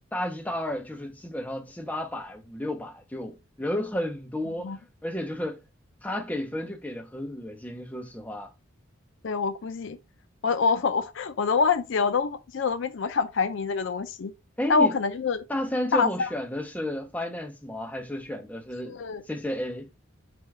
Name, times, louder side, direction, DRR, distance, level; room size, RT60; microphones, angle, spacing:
voice 1, 0.1-4.8 5.0-5.6 6.0-8.5 14.6-15.0 15.5-19.0 19.3-19.9, left 1 dB, 5° left, 0.6 m, -32 dB
voice 2, 9.2-10.0 10.4-14.3 14.7-15.4 15.9-16.3 18.9-19.2, left 4 dB, 60° left, 0.4 m, -25 dB
4.4 x 3.5 x 3.2 m
head